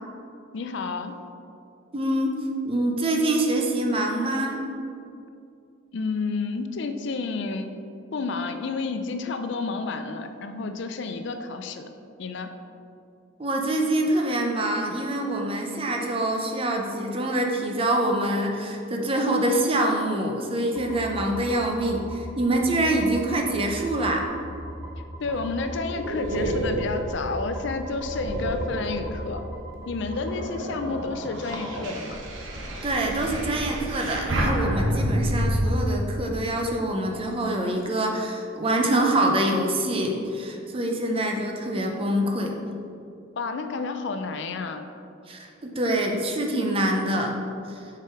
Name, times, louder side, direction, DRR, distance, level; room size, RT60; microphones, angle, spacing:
voice 1, 0.5-1.1 5.9-7.8 8.1-11.9 12.2-12.5 25.2-29.4 29.9-32.2 43.4-44.9, left 4 dB, 60° left, 8 dB, 0.4 m, -30 dB
voice 2, 1.9-4.7 13.4-24.2 32.8-42.6 45.3-47.3 47.7-47.9, right 1 dB, 25° right, 2 dB, 0.7 m, -25 dB
sound 1, 20.8-30.4, equal, 10° right, 1.4 m, -39 dB
sound 2, 25.2-29.4 30.0-35.6, equal, 75° right, 1.1 m, -29 dB
6.7 x 4.9 x 4.5 m, 2.5 s
head